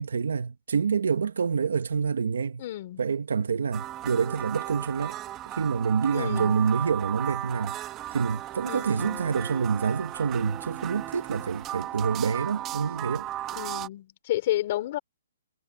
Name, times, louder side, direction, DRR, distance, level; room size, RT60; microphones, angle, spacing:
voice 1, 0.0-2.6 3.0-5.2 5.5-7.7 8.1-13.3, right 6 dB, 75° right, 1.5 m, -27 dB
voice 2, 2.6-3.0 6.1-6.6 8.7-9.2 13.5-15.0, left 14 dB, 35° left, 5.1 m, -31 dB
sound 1, 3.7-13.9, right 13 dB, 15° right, 1.6 m, -36 dB
hypercardioid pair, 170°, 0 cm